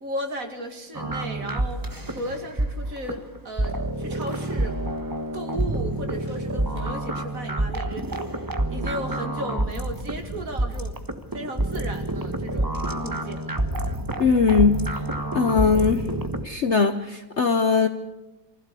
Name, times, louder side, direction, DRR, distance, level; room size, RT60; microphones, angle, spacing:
voice 1, 0.0-4.8 5.3-11.0 11.3-13.6, right 1 dB, 50° right, 5 dB, 2.6 m, -35 dB
sound 1, 0.9-16.4, right 1 dB, 15° right, 1.1 m, -28 dB
Drawer open or close, 1.5-2.5 3.1-4.6 4.8-4.9 5.2-6.9, equal, 15° left, 5.9 m, -47 dB
voice 2, 14.2-15.0 15.3-16.0 16.4-17.9, left 5 dB, 50° left, 9 dB, 0.9 m, -20 dB
24.5 x 15.5 x 8.4 m, 1.1 s
omnidirectional pair, 2.0 m